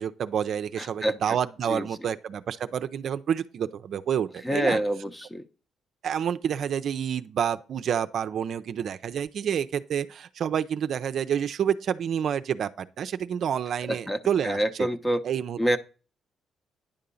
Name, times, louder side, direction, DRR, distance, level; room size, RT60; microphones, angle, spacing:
voice 1, 0.0-4.8 6.0-14.9 15.2-15.6, right 8 dB, 65° right, 0.5 m, -28 dB
voice 2, 0.8-1.4 1.7-1.9 4.4-5.5 13.9-15.2 15.6-15.8, equal, 15° left, 0.8 m, -27 dB
10.0 x 3.8 x 6.9 m
cardioid pair, 90°, 0 cm